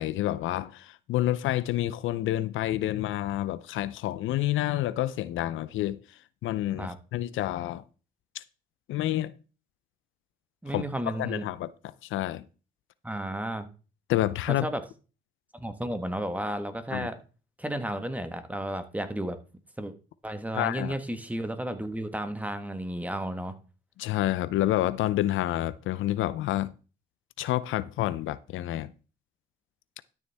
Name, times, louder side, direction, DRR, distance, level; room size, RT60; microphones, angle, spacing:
voice 1, 0.0-6.0 6.4-7.8 8.3-8.4 8.9-9.3 10.7-11.7 12.1-12.4 14.1-14.7 16.9-17.1 20.5-21.0 24.0-26.7 27.4-28.9, left 14 dB, 80° left, 0.6 m, -28 dB
voice 2, 10.6-11.4 13.0-13.7 14.5-14.8 15.5-17.2 17.6-19.4 19.8-19.9 20.2-23.5, right 1 dB, 5° right, 1.3 m, -33 dB
12.5 x 6.9 x 3.5 m
cardioid pair, 90°, 20 cm